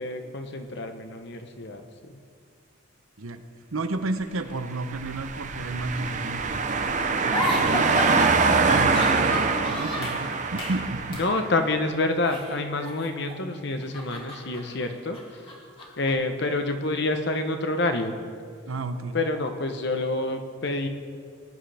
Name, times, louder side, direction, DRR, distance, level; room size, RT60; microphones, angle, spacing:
voice 1, 0.0-2.2 11.1-15.5 16.0-18.2 19.1-20.9, left 2 dB, 55° left, 6 dB, 1.0 m, -28 dB
voice 2, 3.7-8.1 8.6-11.2 18.7-19.2, right 2 dB, 85° right, 9 dB, 0.8 m, -32 dB
sound 1, 4.8-11.6, right 4 dB, 35° right, 0.7 m, -24 dB
sound 2, 7.3-10.2 10.6-10.8 11.1-11.3 12.2-13.4 13.7-16.1, left 1 dB, 25° left, 2.0 m, -32 dB
20.0 x 10.0 x 3.5 m, 2.1 s
head